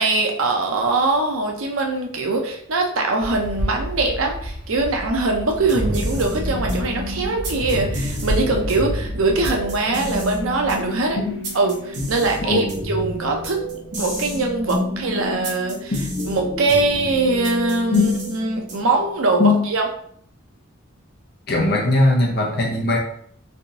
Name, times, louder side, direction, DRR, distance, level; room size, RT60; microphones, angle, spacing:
voice 1, 0.0-11.2 11.5-13.7 14.0-19.9, right 3 dB, 85° right, 2 dB, 0.6 m, -22 dB
sound 1, 3.2-11.4, equal, 85° left, 0.8 m, -29 dB
sound 2, 5.6-19.0, left 1 dB, 55° right, 1.0 m, -30 dB
voice 2, 12.4-12.8 15.9-16.0 17.9-18.1 19.4-19.6 21.5-23.0, left 2 dB, 50° left, 0 dB, 0.8 m, -19 dB
3.4 x 2.6 x 2.8 m, 0.66 s
head